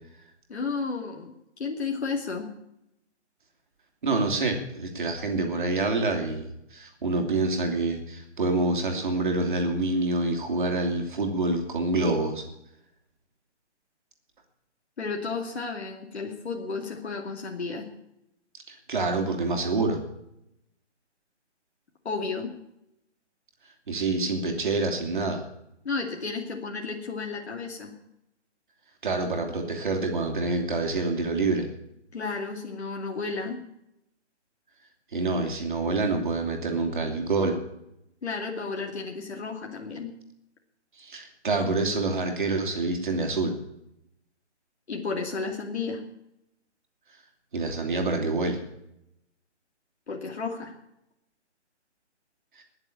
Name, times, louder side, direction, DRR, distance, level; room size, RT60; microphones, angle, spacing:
voice 1, 0.5-2.5 15.0-17.9 22.0-22.5 25.8-27.9 32.1-33.6 38.2-40.1 44.9-46.0 50.1-50.7, left 4 dB, 65° left, 0 dB, 2.6 m, -32 dB
voice 2, 4.0-12.4 18.7-20.0 23.9-25.4 29.0-31.7 35.1-37.6 41.0-43.5 47.5-48.6 52.6-52.7, right 3 dB, 45° right, 3 dB, 3.0 m, -27 dB
20.0 x 7.2 x 8.6 m, 0.83 s
hypercardioid pair, 175°, 36 cm